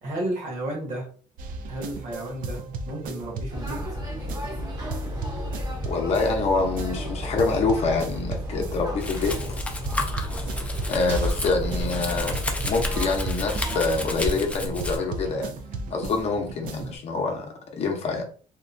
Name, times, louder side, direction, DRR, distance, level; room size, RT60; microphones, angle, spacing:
voice 1, 0.0-1.1 1.7-3.8, right 1 dB, 55° right, -1 dB, 1.2 m, -32 dB
sound 1, 1.4-17.0, right 2 dB, 70° right, 0.4 m, -36 dB
sound 2, 3.5-14.3, left 1 dB, 25° right, 0.7 m, -33 dB
voice 2, 5.9-9.4 10.9-12.4 12.6-15.5 15.9-18.2, left 4 dB, 45° left, 2 dB, 0.6 m, -26 dB
Domestic sounds home sounds, 9.0-15.0, left 1 dB, 10° left, 0.3 m, -32 dB
2.8 x 2.2 x 2.5 m, 0.42 s
cardioid pair, 170°, 15 cm